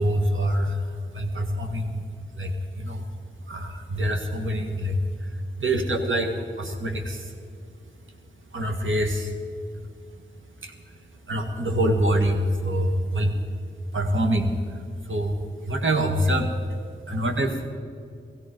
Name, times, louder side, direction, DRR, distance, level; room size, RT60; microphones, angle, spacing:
voice 1, 0.0-2.0 2.4-3.0 3.5-7.4 8.5-9.4 10.6-11.0 11.2-13.3 13.9-15.4 15.6-16.6 17.1-17.7, right 1 dB, 75° right, 3 dB, 1.9 m, -25 dB
17.0 x 16.0 x 5.3 m, 2.3 s
cardioid pair, 45°, 20 cm